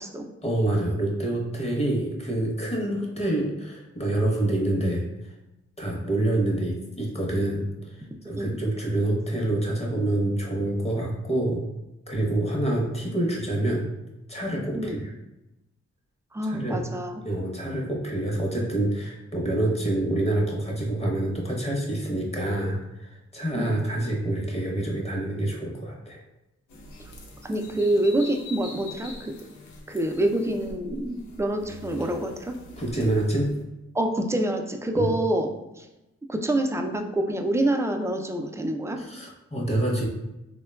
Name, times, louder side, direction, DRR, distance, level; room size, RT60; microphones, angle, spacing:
voice 1, 0.4-5.0 5.8-11.6 12.1-13.9 14.3-15.0 16.4-16.8 17.2-26.2 32.8-33.5 34.9-35.1 39.0-40.1, right 1 dB, 20° left, -2 dB, 0.9 m, -27 dB
voice 2, 16.3-17.2 23.5-23.8 27.4-29.3 29.9-32.5 33.9-35.9 36.3-39.0, right 1 dB, 10° right, 4 dB, 0.3 m, -26 dB
sound 1, 26.7-33.6, left 2 dB, 90° left, 0.5 m, -44 dB
3.5 x 2.2 x 2.2 m, 0.95 s
cardioid pair, 50°, 29 cm